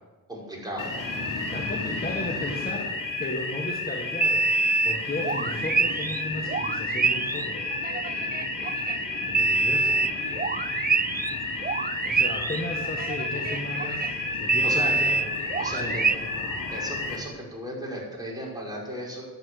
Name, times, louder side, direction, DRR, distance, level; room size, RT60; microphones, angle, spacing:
voice 1, 0.3-0.9 8.1-8.4 14.6-14.9 15.6-16.1 16.7-19.3, equal, 10° right, -4 dB, 5.5 m, -36 dB
sound 1, 0.8-17.2, left 3 dB, 65° left, 3.2 m, -32 dB
voice 2, 1.5-2.9 3.2-7.6 9.3-10.0 12.0-14.1 14.4-15.2 15.8-16.0, left 1 dB, 25° left, 1 dB, 1.7 m, -35 dB
sound 2, 4.2-6.2 6.5-11.4 11.6-16.2, right 4 dB, 25° right, 0.4 m, -26 dB
11.5 x 9.2 x 8.0 m, 1.3 s
cardioid pair, 60°, 35 cm